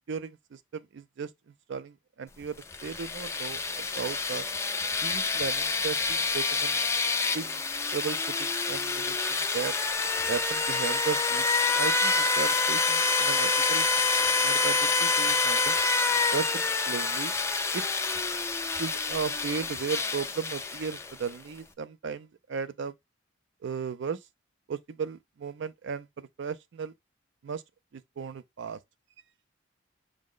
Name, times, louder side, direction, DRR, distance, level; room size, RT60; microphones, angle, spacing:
voice 1, 0.1-2.6 2.8-4.4 5.0-6.8 7.3-7.7 7.9-9.7 10.3-11.5 11.7-13.9 14.2-15.7 16.3-17.3 17.7-17.8 18.8-22.9 23.6-24.2 24.7-26.9 27.4-27.6 27.9-28.8, right 6 dB, 65° right, 0.4 m, -36 dB
sound 1, 2.6-21.3, left 4 dB, 15° left, 0.3 m, -27 dB
6.1 x 2.1 x 3.6 m
head